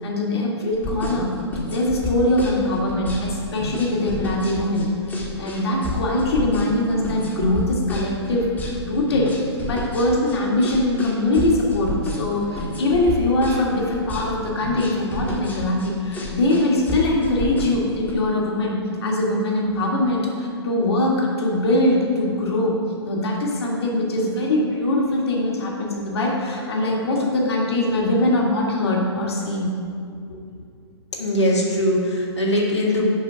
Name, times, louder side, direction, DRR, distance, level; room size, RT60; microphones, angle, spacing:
voice 1, 0.0-1.4 1.7-8.5 8.8-9.3 9.6-22.8 23.0-29.8 30.3-30.4, left 1 dB, 65° left, -2 dB, 1.9 m, -22 dB
sound 1, 0.7-18.1, left 3 dB, 10° left, 1.3 m, -31 dB
voice 2, 31.1-33.1, left 1 dB, 90° left, -3 dB, 1.8 m, -21 dB
6.6 x 5.1 x 5.7 m, 2.4 s
hypercardioid pair, 125°, 14 cm